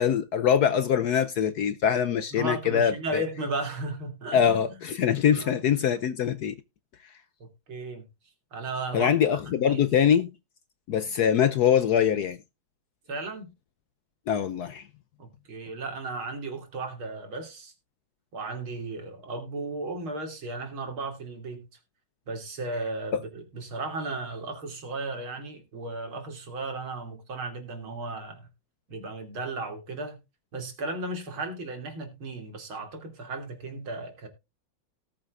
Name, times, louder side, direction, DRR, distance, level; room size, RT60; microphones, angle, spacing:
voice 1, 0.0-3.2 4.3-6.5 8.9-10.3 10.9-12.4 14.3-14.8, left 8 dB, 65° left, 1.0 m, -23 dB
voice 2, 2.3-4.8 5.3-5.6 7.4-8.0 8.5-9.8 13.1-13.5 15.2-17.7 18.3-21.7 22.3-28.5 28.9-30.2 30.5-34.3, right 2 dB, 80° right, 3.6 m, -35 dB
19.0 x 7.5 x 2.4 m
omnidirectional pair, 2.2 m